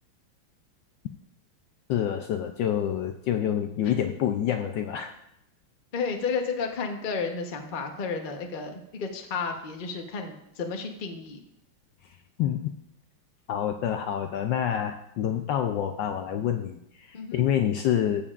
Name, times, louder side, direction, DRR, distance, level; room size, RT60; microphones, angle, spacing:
voice 1, 1.9-5.2 12.4-12.7 13.5-18.2, left 10 dB, 75° left, 6 dB, 1.1 m, -27 dB
voice 2, 5.9-11.4 17.1-17.3, left 5 dB, 45° left, 3 dB, 0.7 m, -32 dB
14.0 x 7.2 x 2.4 m, 0.78 s
omnidirectional pair, 2.4 m